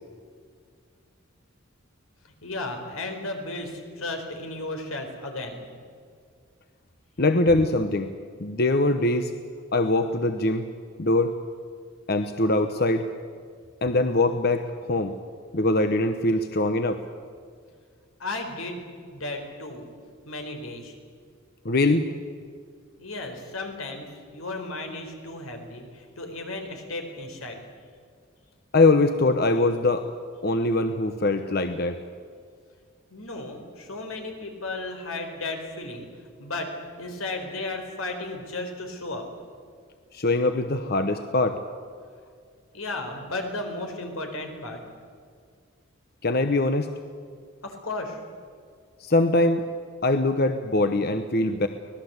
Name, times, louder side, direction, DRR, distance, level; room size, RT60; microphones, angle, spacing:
voice 1, 2.4-5.6 18.2-18.8 19.1-19.8 20.3-20.9 23.0-27.6 33.1-39.2 42.7-44.8 47.6-48.2, left 2 dB, 90° left, 4 dB, 4.3 m, -34 dB
voice 2, 7.2-8.1 8.4-9.3 9.7-10.7 11.0-11.3 12.1-13.0 13.8-15.1 15.5-17.0 21.6-22.1 28.7-30.1 30.4-32.0 40.1-41.6 46.2-46.9 49.0-49.7 50.0-51.7, left 2 dB, 50° left, 8 dB, 1.0 m, -22 dB
25.0 x 18.5 x 8.1 m, 2.1 s
head